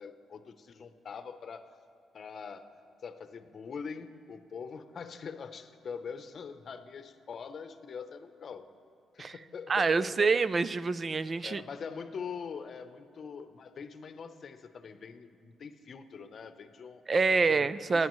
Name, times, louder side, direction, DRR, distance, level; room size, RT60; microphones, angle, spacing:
voice 1, 0.0-1.7 2.1-2.7 3.0-8.7 9.1-10.3 11.4-17.0 17.4-18.1, left 6 dB, 50° left, 9 dB, 0.8 m, -43 dB
voice 2, 9.7-11.6 17.1-18.1, right 4 dB, 35° right, 15 dB, 0.4 m, -26 dB
27.0 x 9.5 x 3.1 m, 2.6 s
cardioid pair, 90°, 0 cm